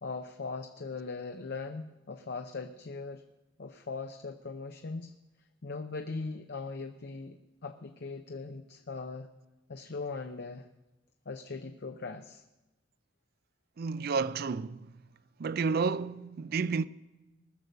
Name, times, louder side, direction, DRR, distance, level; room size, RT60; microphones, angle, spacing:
voice 1, 0.0-3.2 3.6-5.1 5.6-9.3 9.7-10.7 11.3-12.4, left 4 dB, 60° left, 0.6 m, -40 dB
voice 2, 13.8-14.9 15.4-16.8, right 5 dB, 55° right, 0.4 m, -31 dB
19.5 x 6.7 x 6.6 m
head